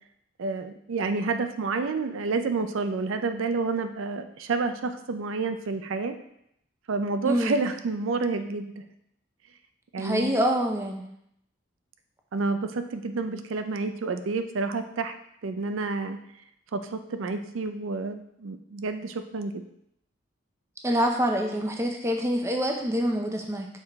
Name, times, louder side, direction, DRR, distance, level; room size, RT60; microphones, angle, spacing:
voice 1, 0.4-6.1 6.9-8.7 9.9-10.4 12.3-15.1 15.4-16.2 16.7-19.6, right 3 dB, 80° right, 8 dB, 0.5 m, -29 dB
voice 2, 7.2-7.6 10.0-11.0 20.8-23.7, equal, 15° right, 2 dB, 0.6 m, -26 dB
6.6 x 4.8 x 3.5 m, 0.76 s
head